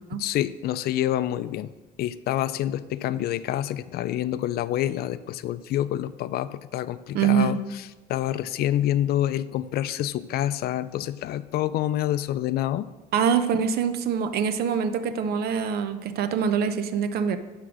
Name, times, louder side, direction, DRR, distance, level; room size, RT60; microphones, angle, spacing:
voice 1, 0.2-1.7 2.0-7.6 8.1-12.9, left 12 dB, 65° left, 15 dB, 0.4 m, -27 dB
voice 2, 7.1-7.6 13.1-17.4, right 7 dB, 70° right, 11 dB, 0.7 m, -24 dB
10.5 x 3.8 x 6.2 m, 1.2 s
cardioid pair, 110°, 17 cm